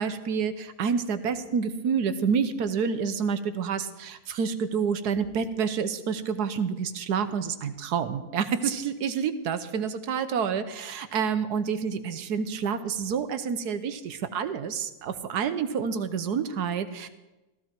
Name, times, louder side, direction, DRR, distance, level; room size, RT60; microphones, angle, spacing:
voice 1, 0.0-17.1, right 6 dB, 85° right, 11 dB, 1.5 m, -28 dB
15.5 x 15.0 x 4.5 m, 1.0 s
omnidirectional pair, 1.7 m